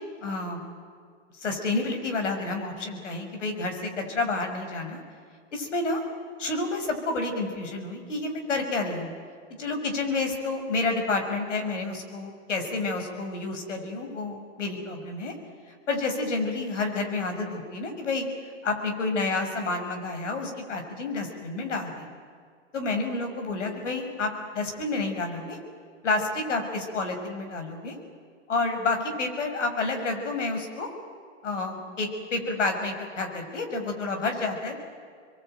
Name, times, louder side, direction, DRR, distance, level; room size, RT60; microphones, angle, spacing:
voice 1, 0.2-0.6 1.3-5.0 5.5-6.0 6.4-9.1 9.6-15.3 15.9-18.3 18.6-22.1 22.7-25.6 26.0-27.9 28.5-30.9 31.4-34.8, left 3 dB, 80° left, 4 dB, 6.5 m, -29 dB
26.0 x 22.5 x 9.2 m, 2.1 s
hypercardioid pair, 135°, 36 cm